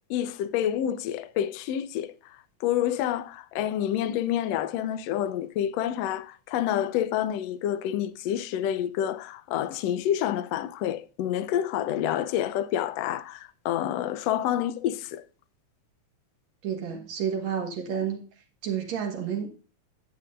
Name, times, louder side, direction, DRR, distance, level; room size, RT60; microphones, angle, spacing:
voice 1, 0.1-2.1 2.6-15.2, left 11 dB, 75° left, 1.7 m, -28 dB
voice 2, 16.6-18.2 18.6-19.5, right 8 dB, 70° right, 2.7 m, -30 dB
11.5 x 8.8 x 2.5 m
omnidirectional pair, 3.3 m